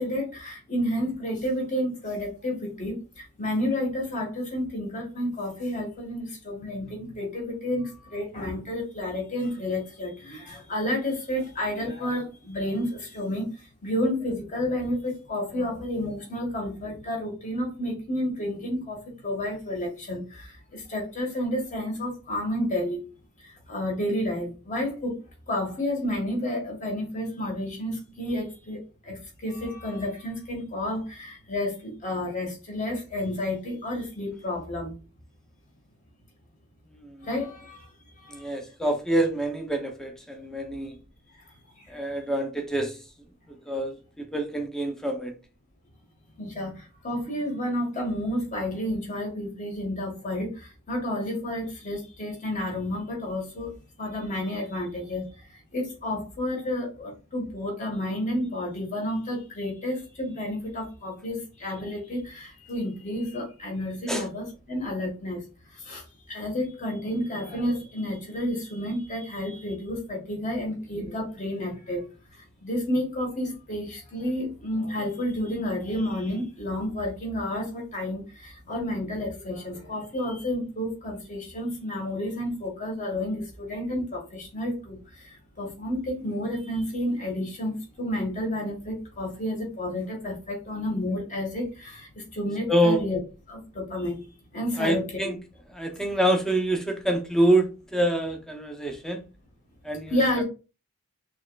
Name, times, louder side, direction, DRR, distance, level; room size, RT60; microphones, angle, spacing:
voice 1, 0.0-23.1 23.4-25.2 25.5-34.9 37.2-37.9 38.2-38.5 41.3-41.4 41.8-42.0 46.4-53.7 54.0-65.4 65.7-72.1 72.3-93.2 93.5-94.3 94.5-95.3 100.1-100.4, left 1 dB, 35° left, 1.5 m, -31 dB
voice 2, 38.3-41.0 41.9-43.0 43.7-45.3 64.1-64.3 92.7-93.0 94.8-95.4 95.7-99.2 99.8-100.4, right 1 dB, ahead, 0.6 m, -26 dB
6.0 x 3.1 x 2.3 m
head